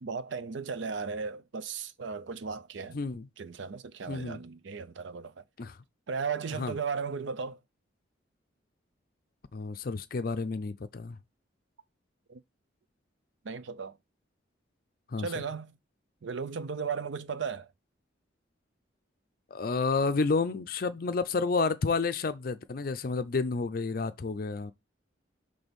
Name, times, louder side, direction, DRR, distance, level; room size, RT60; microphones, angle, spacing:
voice 1, 0.0-3.0 3.4-5.4 6.1-7.6 12.3-12.4 13.4-14.0 15.2-15.8 16.2-17.7, right 5 dB, 75° right, 0.5 m, -36 dB
voice 2, 2.9-3.3 4.1-4.4 5.6-5.8 6.6-6.7 9.5-11.2 15.1-15.3 19.5-24.7, left 4 dB, 50° left, 0.4 m, -30 dB
6.1 x 3.3 x 5.2 m
head